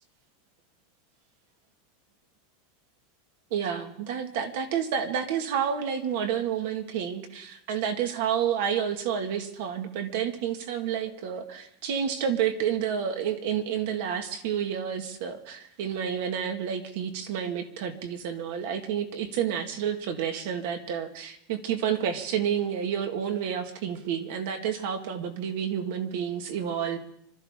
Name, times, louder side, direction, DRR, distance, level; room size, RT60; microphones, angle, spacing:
voice 1, 3.5-27.0, right 8 dB, 55° right, 6 dB, 1.9 m, -30 dB
26.0 x 13.5 x 3.7 m, 0.70 s
supercardioid pair, 175°, 0 cm